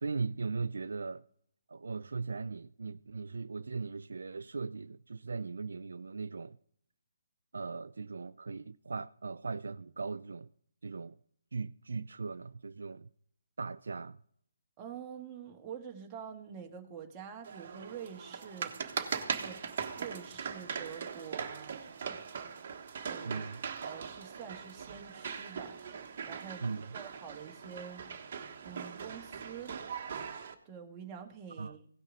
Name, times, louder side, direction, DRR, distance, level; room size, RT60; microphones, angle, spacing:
voice 1, 0.0-1.2 1.7-6.6 7.5-10.5 10.8-11.2 11.5-13.1 13.6-14.2 23.2-23.6 26.6-26.9 31.6-31.7, right 4 dB, 70° right, 0.3 m, -38 dB
voice 2, 14.8-18.8 19.4-19.6 20.0-22.3 23.1-23.5 23.8-25.8 26.2-26.6 26.9-28.1 28.6-29.8 30.6-31.8, right 7 dB, 20° right, 1.6 m, -46 dB
sound 1, 17.4-30.5, right 6 dB, 45° right, 1.4 m, -40 dB
17.0 x 6.3 x 3.9 m
figure-of-eight pair, 145°, 0 cm